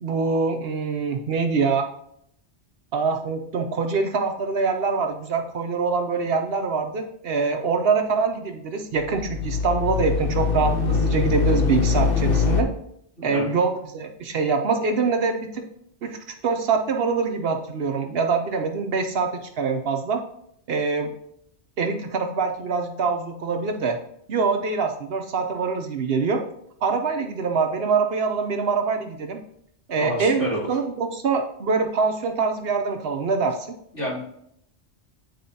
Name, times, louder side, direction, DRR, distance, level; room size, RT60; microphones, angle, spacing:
voice 1, 0.0-1.9 2.9-12.7 13.2-15.6 16.0-16.2 16.4-19.3 19.6-20.2 20.7-21.1 21.8-24.0 24.3-26.4 26.8-29.4 29.9-33.7, right 4 dB, 60° right, 5 dB, 0.8 m, -24 dB
sound 1, 9.0-12.6, left 5 dB, 55° left, 0.8 m, -23 dB
voice 2, 30.0-30.7 33.9-34.2, equal, 75° left, -9 dB, 3.2 m, -29 dB
9.2 x 4.2 x 2.7 m, 0.71 s
omnidirectional pair, 1.2 m